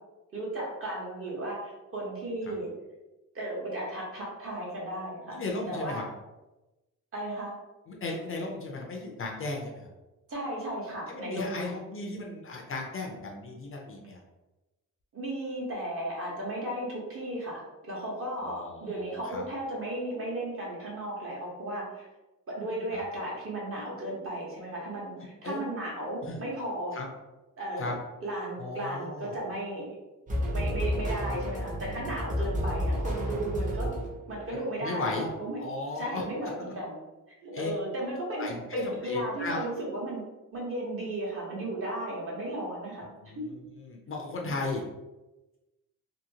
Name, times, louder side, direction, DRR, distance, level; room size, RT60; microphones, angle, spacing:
voice 1, 0.3-2.7 3.3-5.4 5.7-6.0 7.1-7.5 10.3-11.7 15.1-22.1 22.5-27.0 27.6-29.9 30.5-33.9 34.3-35.6 35.9-37.0 37.4-40.2 40.5-43.1 43.4-43.5, right 1 dB, 45° right, -4 dB, 1.0 m, -35 dB
voice 2, 5.3-6.0 7.9-9.9 11.1-14.2 18.4-19.4 22.9-23.0 25.4-25.6 26.2-26.4 26.9-27.1 27.8-27.9 28.6-29.4 32.4-32.5 34.8-35.3 35.6-36.2 37.5-37.7 38.4-39.7 43.0-44.8, left 3 dB, 45° left, 0 dB, 0.5 m, -36 dB
sound 1, 30.3-34.4, equal, 25° right, 0.7 m, -31 dB
2.8 x 2.7 x 2.7 m, 1.1 s
wide cardioid pair, 160°, 32 cm